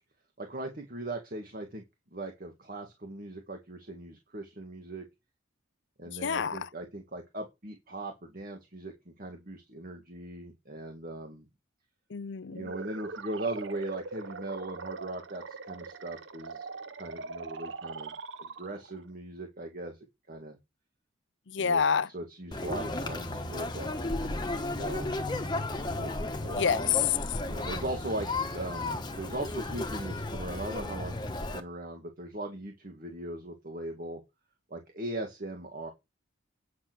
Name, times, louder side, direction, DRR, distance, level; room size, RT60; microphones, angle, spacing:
voice 1, 0.4-1.8 2.1-5.1 6.0-11.5 12.5-16.7 16.9-18.1 18.4-19.9 20.3-20.6 21.6-21.8 22.1-25.1 25.9-26.6 27.4-31.2 31.5-34.2 34.7-35.9, right 1 dB, 45° right, 1.9 m, -39 dB
voice 2, 6.2-6.7 12.1-12.7 21.5-22.1 26.6-27.4, left 7 dB, 65° left, 0.6 m, -28 dB
sound 1, 12.5-19.0, right 4 dB, 65° right, 0.9 m, -42 dB
Conversation, 22.5-31.6, left 2 dB, 20° left, 1.3 m, -34 dB
9.6 x 6.2 x 6.3 m
head